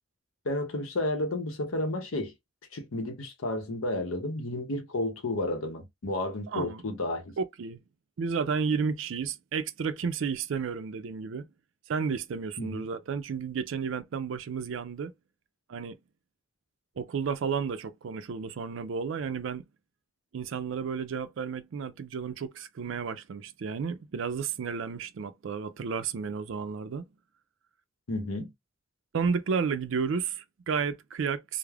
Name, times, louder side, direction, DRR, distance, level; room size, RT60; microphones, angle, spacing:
voice 1, 0.4-2.3 2.7-7.3 12.6-12.9 28.1-28.5, left 2 dB, 85° left, 0.7 m, -32 dB
voice 2, 6.5-6.8 7.4-7.8 8.2-11.5 11.9-15.1 15.7-16.0 17.0-19.6 20.3-27.0 29.1-31.6, right 6 dB, 70° right, 0.4 m, -32 dB
2.3 x 2.0 x 3.2 m
head